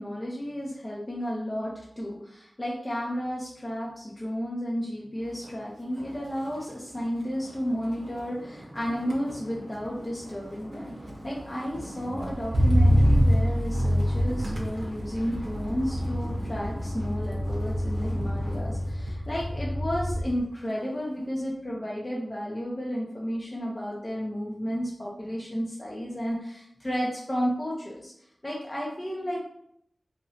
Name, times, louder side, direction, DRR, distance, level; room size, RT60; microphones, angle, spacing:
voice 1, 0.0-10.9 11.2-28.1 28.4-29.4, equal, 25° left, -5 dB, 0.6 m, -32 dB
Motor vehicle (road), 5.3-5.6 6.0-20.4 20.8-21.2, equal, 65° right, 0.8 m, -28 dB
2.9 x 2.9 x 2.7 m, 0.73 s
wide cardioid pair, 70°, 0 cm